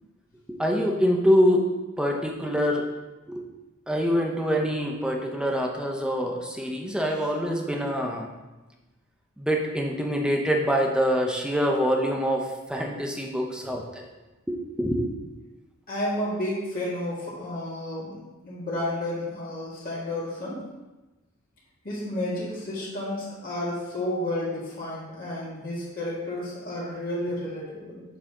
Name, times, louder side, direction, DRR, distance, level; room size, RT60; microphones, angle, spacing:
voice 1, 0.5-1.7 2.0-2.9 3.3-3.4 3.9-8.3 9.4-14.1 14.5-15.1, equal, 5° right, 1 dB, 0.8 m, -25 dB
voice 2, 15.9-20.6 21.8-28.0, left 1 dB, 40° left, -7 dB, 1.8 m, -31 dB
7.3 x 4.1 x 5.0 m, 1.1 s
head